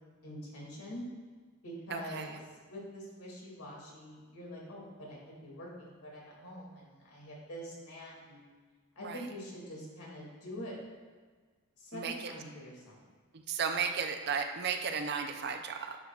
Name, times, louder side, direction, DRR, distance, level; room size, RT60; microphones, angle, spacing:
voice 1, 0.2-1.1 1.6-8.4 9.0-10.7 11.8-13.0, equal, 85° left, -3 dB, 2.3 m, -45 dB
voice 2, 1.9-2.3 9.0-9.2 11.9-12.3 13.5-16.0, right 6 dB, 45° right, 6 dB, 0.5 m, -34 dB
10.5 x 6.4 x 2.4 m, 1.5 s
head